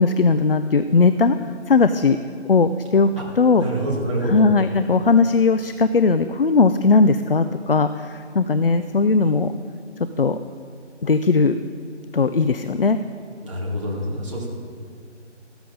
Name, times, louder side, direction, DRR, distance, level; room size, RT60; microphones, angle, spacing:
voice 1, 0.0-1.4 1.7-2.2 2.5-3.1 3.4-3.7 4.3-9.5 10.2-10.4 11.0-11.6 12.1-13.0, left 4 dB, 50° left, 11 dB, 0.5 m, -18 dB
voice 2, 3.6-4.4 13.4-14.5, right 1 dB, 25° right, -4 dB, 2.2 m, -26 dB
14.5 x 12.5 x 4.0 m, 2.1 s
figure-of-eight pair, 165°, 36 cm